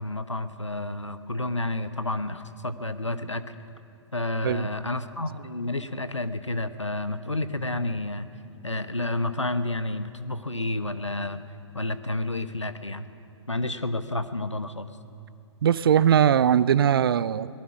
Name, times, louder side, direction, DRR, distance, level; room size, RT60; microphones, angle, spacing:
voice 1, 0.0-3.4 4.1-8.3 8.6-11.4 11.7-13.1 13.5-14.9, left 2 dB, 90° left, 11 dB, 1.1 m, -30 dB
voice 2, 15.6-17.5, right 9 dB, 55° right, 18 dB, 0.6 m, -20 dB
23.5 x 19.0 x 6.1 m, 2.6 s
figure-of-eight pair, 120°, 15 cm